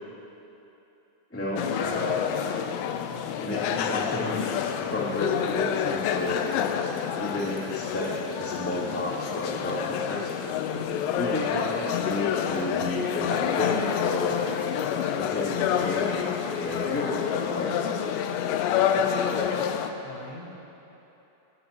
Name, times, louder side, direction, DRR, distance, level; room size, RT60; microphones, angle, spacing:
voice 1, 1.3-2.2 3.4-4.4 4.9-6.7 7.2-8.1 8.4-10.3 11.1-14.6 15.1-17.7, left 1 dB, 5° left, -11 dB, 1.2 m, -32 dB
sound 1, 1.6-19.9, left 8 dB, 90° left, 2.8 m, -28 dB
voice 2, 10.7-11.0 18.9-20.6, left 2 dB, 70° left, -3 dB, 3.5 m, -42 dB
19.0 x 10.0 x 2.9 m, 3.0 s
omnidirectional pair, 4.9 m